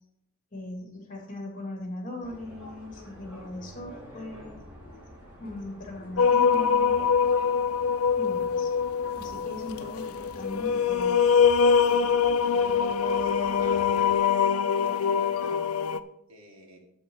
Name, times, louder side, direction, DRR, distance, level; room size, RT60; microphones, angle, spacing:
voice 1, 0.5-4.6 5.4-6.9 8.2-8.7 9.2-11.4, left 2 dB, 35° left, 1 dB, 2.6 m, -39 dB
sound 1, 2.2-14.2, equal, 10° right, 3.6 m, -47 dB
sound 2, 6.2-16.0, left 6 dB, 80° left, 0.5 m, -24 dB
voice 2, 13.6-14.4 14.7-15.6 16.3-16.8, right 1 dB, 80° right, 1 dB, 2.2 m, -47 dB
8.6 x 8.2 x 4.7 m, 0.79 s
head